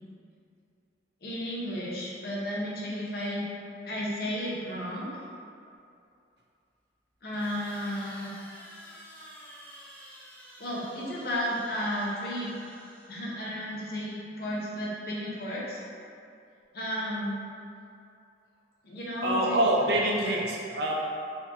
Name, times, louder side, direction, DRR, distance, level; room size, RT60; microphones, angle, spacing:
voice 1, 1.2-3.4 3.8-5.2 7.2-8.3 10.6-12.5 13.1-15.8 16.7-17.3 18.8-20.3, equal, 55° left, -5 dB, 0.7 m, -33 dB
sound 1, 5.7-5.8 7.4-13.5, equal, 10° left, 0.4 m, -50 dB
voice 2, 19.2-20.9, right 1 dB, 65° right, -2 dB, 0.5 m, -25 dB
4.3 x 2.3 x 2.9 m, 2.5 s
head